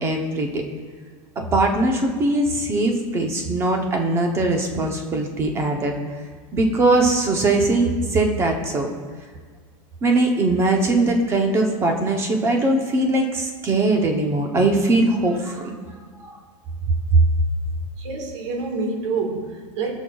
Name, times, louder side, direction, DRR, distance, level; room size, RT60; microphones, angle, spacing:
voice 1, 0.0-0.6 1.5-5.9 6.5-8.9 10.0-15.8 16.2-16.3, right 2 dB, 15° right, 3 dB, 0.7 m, -21 dB
voice 2, 18.0-19.9, right 4 dB, 65° right, 3 dB, 1.6 m, -27 dB
19.0 x 6.3 x 2.3 m, 1.5 s
supercardioid pair, 175°, 17 cm